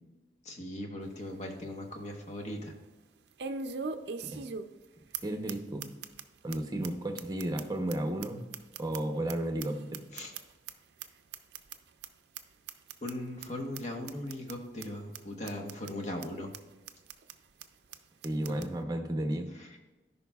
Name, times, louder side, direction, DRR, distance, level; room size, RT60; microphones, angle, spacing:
voice 1, 0.4-2.7 10.1-10.3 13.0-16.5 18.5-18.6 19.5-19.8, left 1 dB, 40° left, 2 dB, 1.1 m, -39 dB
sound 1, 1.0-1.1 1.6-1.7 3.4-4.9 5.1-5.2 5.5-5.6 5.8-6.2 6.5-6.6 6.8-6.9 7.2-9.3 9.6-10.7 11.0-11.1 11.3-11.8 12.0-12.1 12.4-12.5 12.7-13.1 13.4-13.5 13.8-13.9 14.1-14.5 14.8-14.9 15.1-15.2 15.5-15.9 16.2-16.3 16.5-16.6 16.9-17.3 17.6-17.7 17.9-18.0 18.2-18.7, right 5 dB, 70° right, 0.5 m, -39 dB
voice 2, 5.2-5.9 6.4-8.5 8.8-9.8 18.2-19.5, right 1 dB, 20° right, 5 dB, 0.7 m, -33 dB
13.5 x 5.4 x 2.3 m, 1.2 s
head